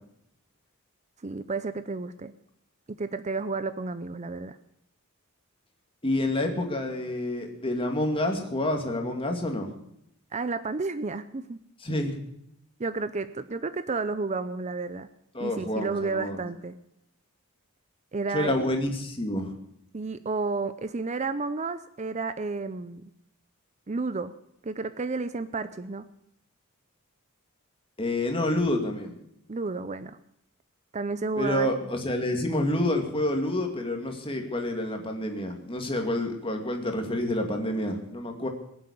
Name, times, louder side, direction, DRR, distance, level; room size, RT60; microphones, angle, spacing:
voice 1, 1.2-2.3 2.9-4.6 10.3-11.6 12.8-15.1 15.4-16.8 18.1-18.5 19.9-23.1 23.9-24.3 24.6-26.0 29.5-30.2 30.9-31.7, right 3 dB, 30° right, 13 dB, 0.5 m, -31 dB
voice 2, 6.0-9.7 11.8-12.2 15.3-16.4 18.3-19.5 28.0-29.2 31.4-38.5, left 1 dB, 25° left, 3 dB, 2.4 m, -28 dB
21.5 x 7.8 x 8.6 m, 0.76 s
head